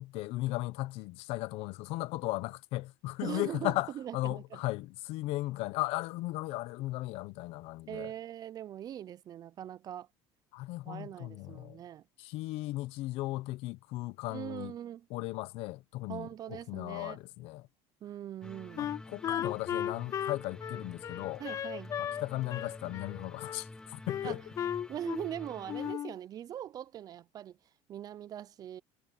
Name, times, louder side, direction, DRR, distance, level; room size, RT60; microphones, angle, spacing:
voice 1, 0.0-8.1 10.5-11.8 12.2-14.7 15.1-17.7 18.8-21.4 22.0-24.4, left 18 dB, 70° left, 0.9 m, -36 dB
voice 2, 3.2-4.6 7.9-10.1 10.8-12.0 14.3-15.1 16.1-17.2 18.0-18.9 21.4-21.9 24.2-24.4 24.9-27.6 27.9-28.8, right 11 dB, 35° right, 0.5 m, -41 dB
sound 1, 18.4-25.9, left 2 dB, 5° left, 0.9 m, -49 dB
Wind instrument woodwind instrument, 18.8-22.2 22.5-23.6 24.1-25.4 25.7-26.2, left 9 dB, 30° left, 0.4 m, -36 dB
cardioid pair, 150°, 11 cm